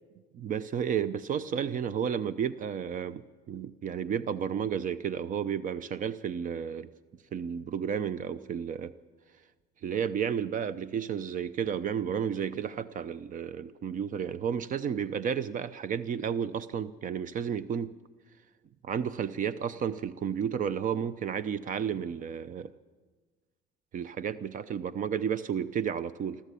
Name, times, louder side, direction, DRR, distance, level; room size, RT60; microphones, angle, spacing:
voice 1, 0.3-6.9 7.3-8.9 9.8-17.9 18.8-22.7 23.9-26.4, right 8 dB, 50° right, 15 dB, 0.7 m, -32 dB
26.5 x 13.5 x 8.4 m, 1.4 s
cardioid pair, 110°, 17 cm